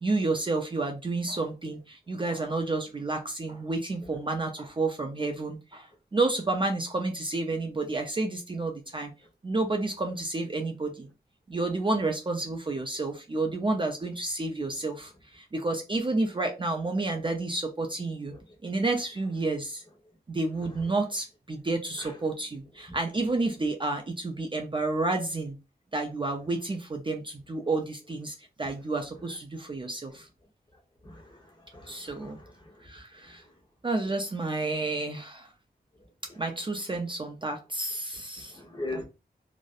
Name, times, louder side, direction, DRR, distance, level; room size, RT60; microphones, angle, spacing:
voice 1, 0.0-9.1 9.4-11.1 11.5-18.3 18.6-19.8 20.3-25.6 25.9-30.3 31.9-32.4 32.8-33.4 33.8-35.5 36.4-38.6 38.9-39.0, right 2 dB, 30° right, 0.4 m, -30 dB
voice 2, 31.0-31.4 31.7-32.7 38.5-39.0, left 2 dB, 25° left, 0.9 m, -39 dB
2.6 x 2.0 x 2.3 m
wide cardioid pair, 75°, 17 cm